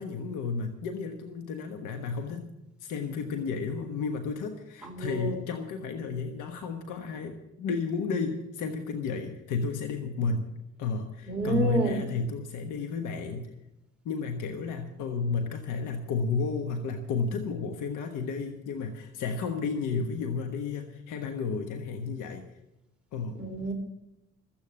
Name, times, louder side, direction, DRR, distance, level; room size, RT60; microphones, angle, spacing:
voice 1, 0.0-2.5 2.8-10.5 10.8-13.5 14.0-22.4 23.1-23.4, left 4 dB, 90° left, 5 dB, 1.3 m, -32 dB
voice 2, 4.8-5.4 11.3-12.0 23.4-23.7, right 2 dB, 5° right, -1 dB, 3.5 m, -29 dB
14.0 x 8.8 x 7.6 m, 0.92 s
cardioid pair, 90°, 30 cm